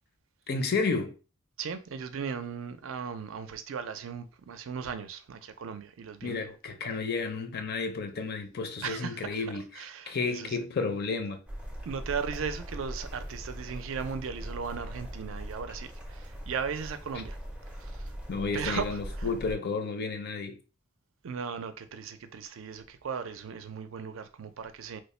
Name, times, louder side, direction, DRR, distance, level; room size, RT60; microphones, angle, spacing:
voice 1, 0.5-1.1 6.2-11.4 18.3-20.6, left 4 dB, 50° left, 0.5 m, -32 dB
voice 2, 1.6-6.5 8.8-10.6 11.9-17.4 17.7-18.1 18.5-19.3 21.2-25.0, right 6 dB, 65° right, 0.4 m, -37 dB
sound 1, 11.5-19.5, equal, 5° right, 0.5 m, -40 dB
3.1 x 2.1 x 4.2 m
head